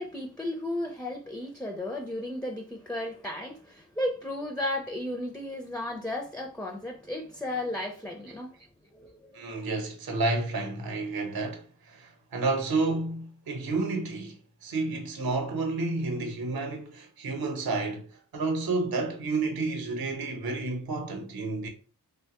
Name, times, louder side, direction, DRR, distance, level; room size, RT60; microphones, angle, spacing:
voice 1, 0.0-8.5 8.9-9.7, left 1 dB, 5° left, 0.5 m, -34 dB
voice 2, 9.3-21.7, right 3 dB, 60° right, 0.8 m, -30 dB
2.9 x 2.2 x 2.8 m
cardioid pair, 55°, 42 cm